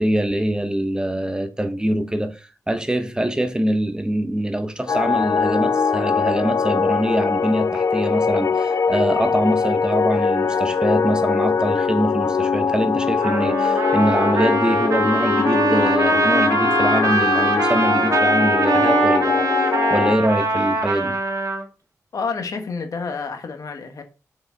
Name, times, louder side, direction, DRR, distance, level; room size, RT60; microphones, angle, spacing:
voice 1, 0.0-21.2, right 1 dB, 15° right, 1.0 m, -23 dB
sound 1, 4.9-20.2, left 5 dB, 60° left, 0.4 m, -21 dB
Trumpet, 13.2-21.6, right 3 dB, 75° right, 1.7 m, -22 dB
voice 2, 22.1-24.0, left 5 dB, 75° left, 1.6 m, -29 dB
6.9 x 5.8 x 4.0 m
wide cardioid pair, 100°, 6 cm